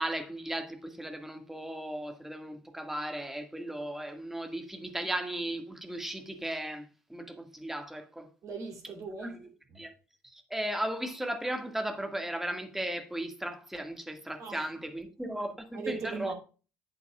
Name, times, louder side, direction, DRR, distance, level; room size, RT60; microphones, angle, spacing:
voice 1, 0.0-8.3 9.2-9.5 9.8-9.9 10.2-16.3, right 1 dB, 5° right, 1.8 m, -36 dB
voice 2, 8.4-9.8 14.4-14.6 15.7-16.3, right 4 dB, 45° right, 2.7 m, -39 dB
11.0 x 8.4 x 2.4 m
figure-of-eight pair, 55°, 7 cm